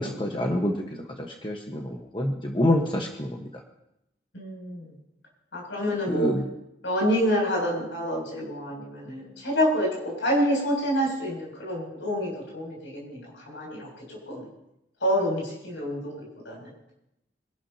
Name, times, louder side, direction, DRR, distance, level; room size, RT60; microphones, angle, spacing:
voice 1, 0.0-3.5 6.1-6.4, left 1 dB, 25° left, 1 dB, 1.3 m, -27 dB
voice 2, 4.3-4.9 5.5-6.3 6.8-14.5 15.0-16.7, equal, 85° left, -3 dB, 7.2 m, -28 dB
25.5 x 12.5 x 2.9 m, 0.84 s
head